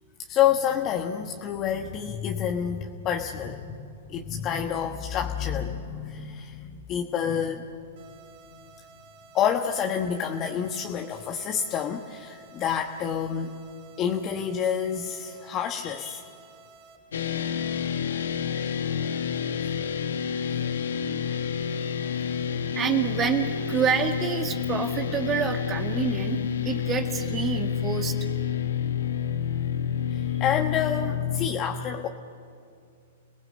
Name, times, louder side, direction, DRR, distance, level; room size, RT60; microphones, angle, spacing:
voice 1, 0.3-8.1 9.3-13.5 14.0-16.3 30.1-32.1, left 8 dB, 35° left, 3 dB, 1.3 m, -28 dB
sound 1, 8.0-17.0, right 5 dB, 50° right, 4.5 m, -53 dB
sound 2, 17.1-31.5, left 8 dB, 80° left, 1.5 m, -29 dB
voice 2, 22.7-26.4 26.6-28.2, right 7 dB, 25° right, 5 dB, 1.8 m, -27 dB
30.0 x 18.5 x 7.8 m, 2.3 s
hypercardioid pair, 120°, 0 cm